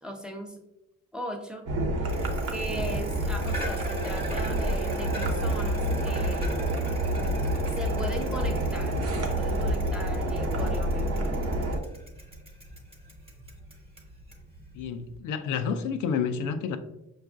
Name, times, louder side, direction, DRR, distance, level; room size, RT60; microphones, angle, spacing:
voice 1, 0.0-0.6 1.1-1.7 2.0-2.1 2.5-6.6 7.8-11.3, equal, 5° right, 2 dB, 0.6 m, -38 dB
sound 1, 1.7-11.8, right 1 dB, 55° right, 0.8 m, -28 dB
Bicycle, 2.0-15.2, equal, 20° right, 1.0 m, -41 dB
voice 2, 14.7-16.8, left 6 dB, 80° left, 8 dB, 0.5 m, -29 dB
5.9 x 2.4 x 2.4 m, 0.89 s
cardioid pair, 90°, 30 cm